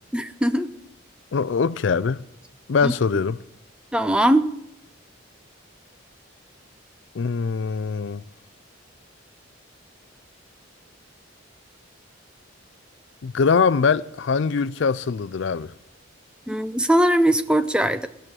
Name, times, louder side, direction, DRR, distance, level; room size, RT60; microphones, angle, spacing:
voice 1, 0.1-0.7 2.8-2.9 3.9-4.5 16.5-18.1, right 1 dB, 5° right, 0.4 m, -20 dB
voice 2, 1.3-2.2 2.7-3.4 7.1-8.2 13.2-15.7, left 5 dB, 60° left, 0.4 m, -22 dB
18.5 x 6.3 x 8.8 m
head